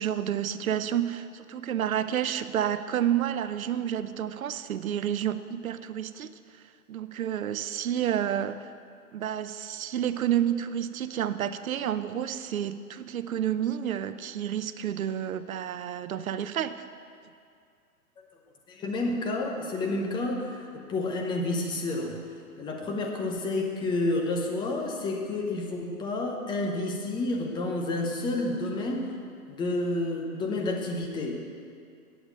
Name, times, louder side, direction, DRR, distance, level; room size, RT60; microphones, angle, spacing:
voice 1, 0.0-6.3 6.9-8.7 9.1-16.8, right 10 dB, 65° right, 13 dB, 0.7 m, -30 dB
voice 2, 18.7-22.2 22.6-29.2 29.5-31.4, left 2 dB, 10° left, 1 dB, 0.8 m, -30 dB
8.9 x 7.9 x 7.4 m, 2.3 s
figure-of-eight pair, 125°, 45 cm